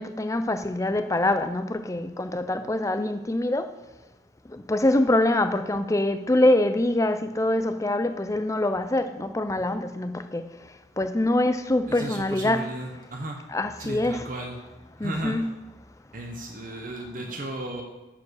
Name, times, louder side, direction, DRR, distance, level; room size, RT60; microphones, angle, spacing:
voice 1, 0.0-3.8 4.5-12.7 13.5-14.3 15.0-15.5, left 1 dB, 15° left, 10 dB, 0.5 m, -25 dB
voice 2, 11.9-13.4 13.8-14.5 15.0-15.4 16.1-17.8, right 1 dB, 45° right, 2 dB, 1.0 m, -35 dB
9.5 x 4.9 x 6.4 m, 1.2 s
head